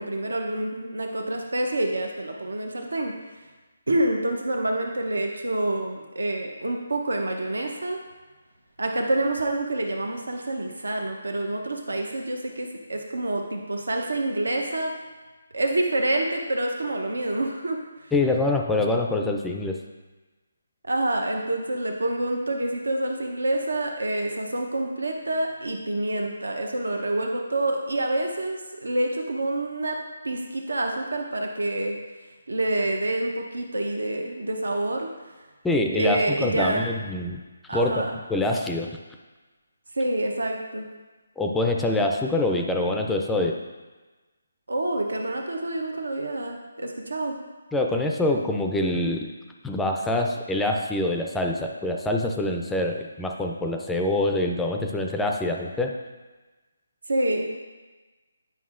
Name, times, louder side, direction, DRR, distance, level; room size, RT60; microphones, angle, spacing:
voice 1, 0.0-3.1 3.9-8.0 8.8-14.9 15.5-17.8 20.8-30.0 30.2-32.0 32.5-35.1 35.9-36.8 37.7-38.2 39.9-40.9 44.7-47.4 57.1-57.5, right 1 dB, 85° right, 2 dB, 0.8 m, -27 dB
voice 2, 18.1-19.8 35.6-37.4 37.7-37.9 38.3-38.9 41.4-43.6 47.7-49.3 49.6-55.9, left 2 dB, 5° left, 2 dB, 0.4 m, -25 dB
9.3 x 5.3 x 2.5 m, 1.3 s
figure-of-eight pair, 155°, 0 cm